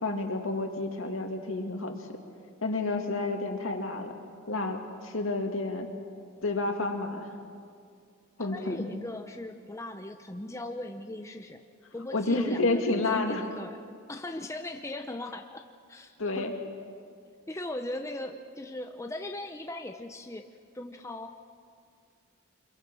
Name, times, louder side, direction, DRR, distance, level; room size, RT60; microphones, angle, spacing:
voice 1, 0.0-1.9 2.6-4.1 4.5-5.9 6.4-7.3 8.4-8.8 12.1-13.4 16.2-16.5, left 2 dB, 70° left, 3 dB, 2.4 m, -30 dB
voice 2, 8.4-11.6 11.9-13.8 14.1-15.6 15.9-16.5 17.5-20.5 20.7-21.4, left 1 dB, 15° left, 4 dB, 0.8 m, -38 dB
26.5 x 23.0 x 6.2 m, 2.3 s
head